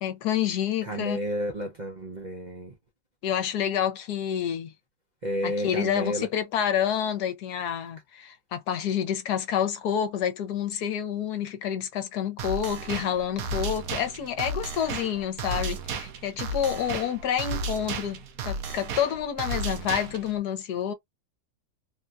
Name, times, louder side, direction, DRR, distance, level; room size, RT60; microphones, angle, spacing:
voice 1, 0.0-1.2 3.2-4.7 5.4-20.9, left 9 dB, 75° left, 1.3 m, -28 dB
voice 2, 0.8-2.7 5.2-6.3, equal, 45° right, 0.5 m, -31 dB
sound 1, 12.4-20.4, right 3 dB, 65° right, 1.1 m, -33 dB
3.5 x 2.3 x 2.6 m
omnidirectional pair, 1.8 m